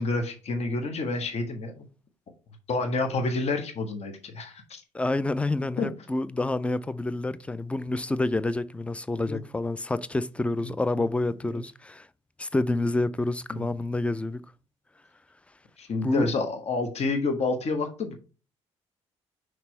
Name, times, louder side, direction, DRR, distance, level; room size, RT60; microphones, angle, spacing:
voice 1, 0.0-1.7 2.7-4.8 5.8-5.9 9.3-9.4 10.6-11.0 11.5-11.6 13.5-13.6 15.8-18.2, left 3 dB, 45° left, 1.3 m, -29 dB
voice 2, 4.9-12.1 12.4-14.4 16.0-16.3, left 2 dB, 10° left, 0.4 m, -28 dB
5.9 x 3.3 x 5.3 m
figure-of-eight pair, 45°, 16 cm